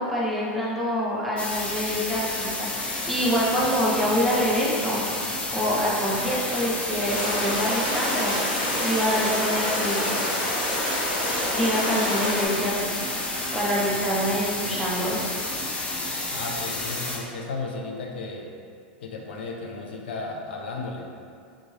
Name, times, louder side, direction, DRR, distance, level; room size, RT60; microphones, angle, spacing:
voice 1, 0.0-5.0 5.5-8.3 8.8-10.2 11.5-13.3 13.5-15.2, equal, ahead, -7 dB, 0.8 m, -26 dB
sound 1, 1.4-17.2, left 2 dB, 20° left, 0.5 m, -31 dB
sound 2, 2.7-8.9 10.7-17.0, right 5 dB, 65° right, 0.5 m, -41 dB
sound 3, 7.1-12.5, left 1 dB, 55° left, 1.4 m, -28 dB
voice 2, 16.3-18.5 19.0-21.1, left 3 dB, 75° left, 0 dB, 0.4 m, -34 dB
3.6 x 2.6 x 3.1 m, 2.3 s
hypercardioid pair, 110°, 6 cm